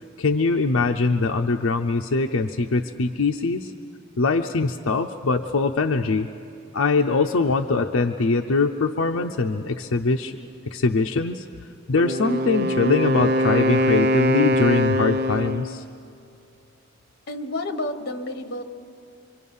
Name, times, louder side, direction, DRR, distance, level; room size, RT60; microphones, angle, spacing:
voice 1, 0.2-3.7 4.2-6.3 6.7-10.4 10.7-11.4 11.9-15.8, left 3 dB, 75° left, 4 dB, 0.6 m, -22 dB
Wind instrument woodwind instrument, 12.0-15.8, equal, 50° right, 0.6 m, -22 dB
voice 2, 17.3-18.6, left 1 dB, 50° left, 7 dB, 1.3 m, -30 dB
25.0 x 25.0 x 5.5 m, 2.6 s
head